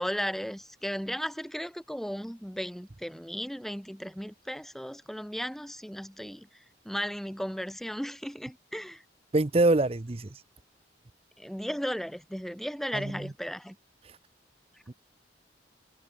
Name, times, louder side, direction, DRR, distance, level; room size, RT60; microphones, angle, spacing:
voice 1, 0.0-6.5 6.8-9.0 11.4-13.8, equal, ahead, 1.2 m, -35 dB
voice 2, 9.3-10.4 12.9-13.3 14.9-15.0, right 2 dB, 30° right, 0.6 m, -25 dB
head